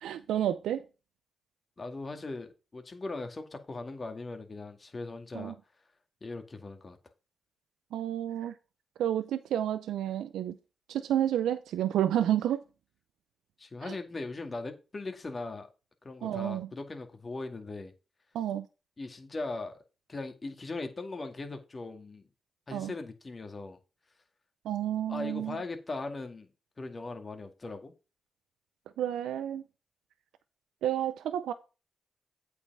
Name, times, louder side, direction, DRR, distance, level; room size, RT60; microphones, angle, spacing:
voice 1, 0.0-0.8 5.3-5.5 7.9-8.5 9.0-10.6 10.9-12.6 13.8-14.0 16.2-16.7 18.3-18.7 22.7-22.9 24.6-25.6 29.0-29.6 30.8-31.5, right 11 dB, 90° right, 0.5 m, -30 dB
voice 2, 1.8-5.5 6.2-7.0 13.6-15.7 16.0-17.9 19.0-19.8 20.1-22.3 22.7-23.8 25.1-26.5 26.8-27.9, left 3 dB, 40° left, 2.0 m, -39 dB
8.4 x 5.1 x 5.4 m
supercardioid pair, 50°, 0 cm